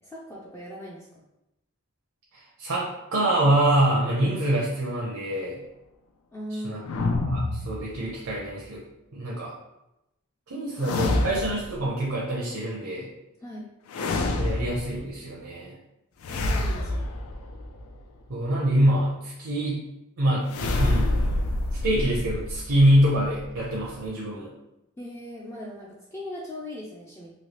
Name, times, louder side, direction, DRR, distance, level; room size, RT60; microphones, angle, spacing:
voice 1, 0.0-1.1 6.3-6.9 13.4-13.7 16.3-17.2 25.0-27.3, equal, 15° left, -4 dB, 0.3 m, -39 dB
voice 2, 2.3-5.6 6.5-6.8 7.3-8.8 9.1-9.5 10.5-13.1 14.4-15.8 18.3-19.8 20.2-20.4 20.8-21.3 21.7-24.5, right 1 dB, 75° right, -4 dB, 0.6 m, -25 dB
sound 1, 6.8-8.4 10.8-11.8 13.9-15.1 16.2-18.0 20.5-24.1, left 2 dB, 90° left, 0.4 m, -27 dB
3.0 x 2.7 x 2.9 m, 0.91 s
head